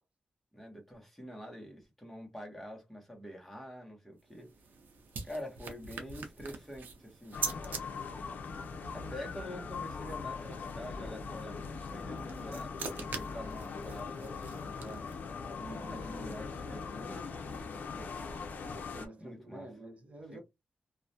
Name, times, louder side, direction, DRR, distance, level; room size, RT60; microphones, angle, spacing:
voice 1, 0.5-4.5 5.2-7.9 8.9-15.0 15.9-18.1 19.2-19.7, left 1 dB, 5° left, 0.9 m, -46 dB
sound 1, 4.2-7.8 12.0-15.3, right 5 dB, 85° right, 0.6 m, -42 dB
sound 2, 7.3-19.1, left 5 dB, 70° left, 0.5 m, -41 dB
voice 2, 15.6-16.1 18.7-20.4, right 2 dB, 45° right, 0.8 m, -48 dB
2.3 x 2.1 x 2.6 m
wide cardioid pair, 140°, 3 cm